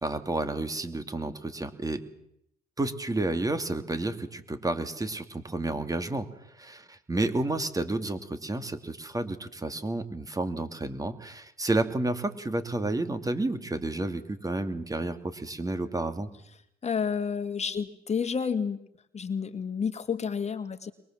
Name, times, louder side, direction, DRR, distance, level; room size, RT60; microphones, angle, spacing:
voice 1, 0.0-2.0 2.8-6.3 6.5-16.3, right 2 dB, 20° right, 9 dB, 2.6 m, -31 dB
voice 2, 16.8-18.8 19.1-20.9, left 6 dB, 35° left, 10 dB, 1.8 m, -30 dB
23.0 x 21.0 x 7.6 m, 0.73 s
supercardioid pair, 80°, 18 cm